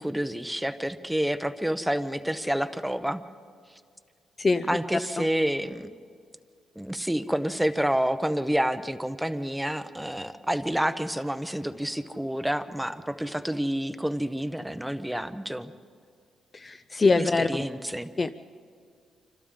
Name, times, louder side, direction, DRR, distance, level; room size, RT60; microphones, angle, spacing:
voice 1, 0.0-3.2 4.7-5.9 6.8-15.7 17.1-18.1, equal, 5° right, 11 dB, 0.7 m, -28 dB
voice 2, 16.5-17.7 18.2-18.4, left 3 dB, 25° left, 10 dB, 0.5 m, -24 dB
27.5 x 25.5 x 3.7 m, 2.2 s
cardioid pair, 125°, 0 cm